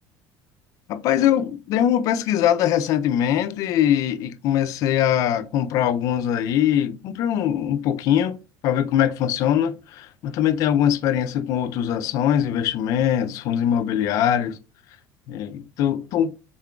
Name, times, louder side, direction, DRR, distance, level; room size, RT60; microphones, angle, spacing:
voice 1, 0.9-14.6 15.3-16.3, left 10 dB, 50° left, 0.3 m, -22 dB
3.7 x 3.7 x 2.2 m
cardioid pair, 155°, 8 cm